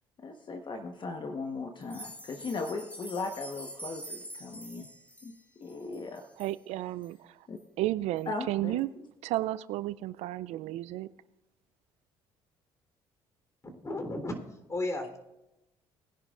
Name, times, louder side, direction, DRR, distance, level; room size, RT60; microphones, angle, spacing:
voice 1, 0.2-4.9 5.2-5.3 5.6-6.2 7.5-7.6 8.3-8.8, left 3 dB, 40° left, 5 dB, 1.2 m, -37 dB
sound 1, 1.8-6.6 7.0-7.1 7.6-7.7 8.2-8.3, right 1 dB, 10° left, 1.7 m, -46 dB
voice 2, 6.4-7.5 7.8-8.9 9.2-11.1, right 15 dB, 70° right, 16 dB, 0.4 m, -33 dB
voice 3, 13.6-14.3 14.7-15.2, left 2 dB, 25° left, 5 dB, 3.5 m, -34 dB
21.0 x 11.0 x 2.5 m, 0.93 s
hypercardioid pair, 60°, 12 cm